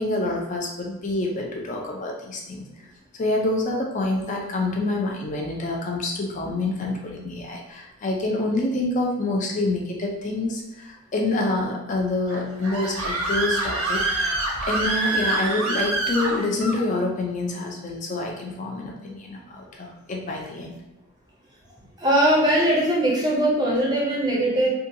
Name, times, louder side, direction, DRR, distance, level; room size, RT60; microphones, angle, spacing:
voice 1, 0.0-2.7 3.2-14.1 14.6-20.8, left 2 dB, 35° left, 0 dB, 0.4 m, -27 dB
Screaming, 12.3-16.8, right 2 dB, 85° right, 0.6 m, -26 dB
voice 2, 22.0-24.7, right 1 dB, 20° right, -3 dB, 0.5 m, -20 dB
2.7 x 2.3 x 2.6 m, 0.91 s
head